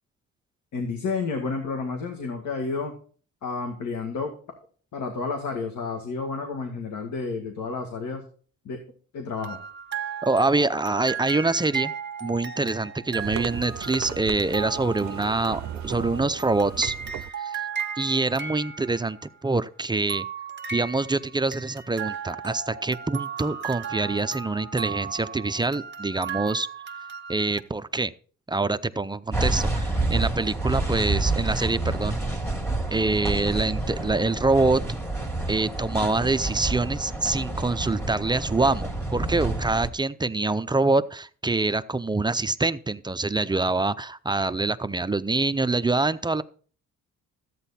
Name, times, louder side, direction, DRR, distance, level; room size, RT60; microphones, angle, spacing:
voice 1, 0.7-2.9 3.4-4.3 4.9-8.2 8.7-8.8 9.1-9.6, left 4 dB, 70° left, 4 dB, 2.2 m, -30 dB
sound 1, 9.4-19.3 20.1-27.6, right 6 dB, 40° right, 1.7 m, -36 dB
voice 2, 10.2-11.9 12.2-16.9 17.4-17.6 18.0-20.2 20.7-26.7 27.3-28.1 28.5-32.3 32.9-35.0 35.5-46.4, right 3 dB, 15° right, 11 dB, 0.6 m, -25 dB
sound 2, 13.2-17.3, right 12 dB, 70° right, 0.6 m, -36 dB
sound 3, 29.3-39.9, right 2 dB, 10° left, 2.2 m, -28 dB
13.5 x 9.0 x 4.3 m, 0.43 s
cardioid pair, 90°, 30 cm